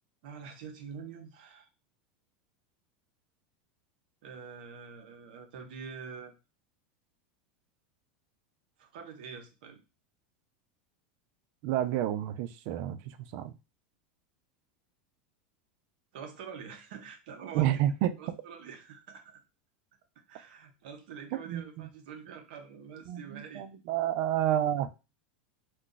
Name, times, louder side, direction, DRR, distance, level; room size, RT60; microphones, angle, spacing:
voice 1, 0.2-1.7 4.2-6.3 8.8-9.8 16.1-17.8 18.2-19.4 20.3-23.7, right 6 dB, 75° right, 0.8 m, -45 dB
voice 2, 11.6-13.5 17.5-18.2 21.5-21.9 23.1-24.9, right 11 dB, 60° right, 0.4 m, -30 dB
2.3 x 2.3 x 3.8 m
supercardioid pair, 120°, 5 cm